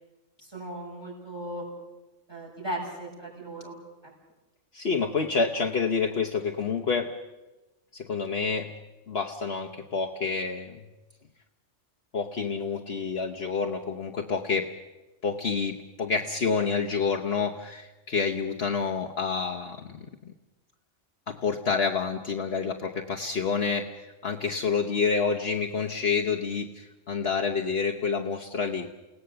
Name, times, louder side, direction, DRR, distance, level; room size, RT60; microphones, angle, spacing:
voice 1, 0.5-1.7 2.3-3.7, right 1 dB, 20° right, -4 dB, 7.2 m, -36 dB
voice 2, 4.7-7.1 7.9-8.7 9.1-10.8 12.1-14.7 15.2-20.0 21.3-28.9, left 5 dB, 55° left, 2 dB, 1.2 m, -28 dB
29.0 x 18.0 x 6.9 m, 1.1 s
omnidirectional pair, 1.3 m